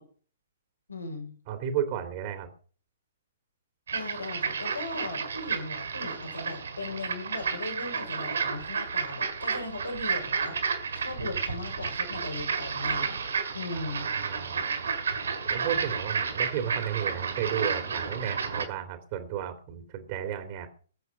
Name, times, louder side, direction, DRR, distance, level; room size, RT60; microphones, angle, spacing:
voice 1, 0.9-1.3 3.9-13.2 13.5-14.1, left 2 dB, 80° left, 2 dB, 6.2 m, -38 dB
voice 2, 1.5-2.5 13.7-14.7 15.5-20.7, right 9 dB, 35° right, 7 dB, 2.6 m, -33 dB
sound 1, 3.9-18.6, right 6 dB, 65° right, 3.9 m, -31 dB
21.0 x 8.0 x 5.5 m, 0.42 s
figure-of-eight pair, 120°, 0 cm